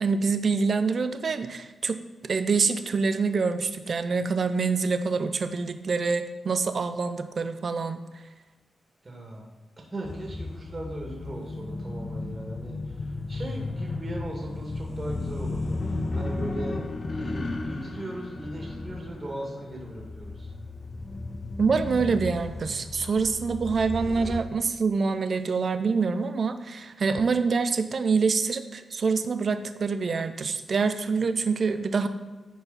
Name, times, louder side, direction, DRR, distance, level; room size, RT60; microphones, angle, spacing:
voice 1, 0.0-8.0 21.6-32.1, right 4 dB, 55° right, 10 dB, 0.6 m, -26 dB
voice 2, 9.0-9.4 9.9-20.5, right 1 dB, 35° right, -1 dB, 2.1 m, -38 dB
sound 1, 10.0-24.4, left 2 dB, 45° left, 0.7 m, -34 dB
10.0 x 4.8 x 4.1 m, 1.3 s
cardioid pair, 65°, 0 cm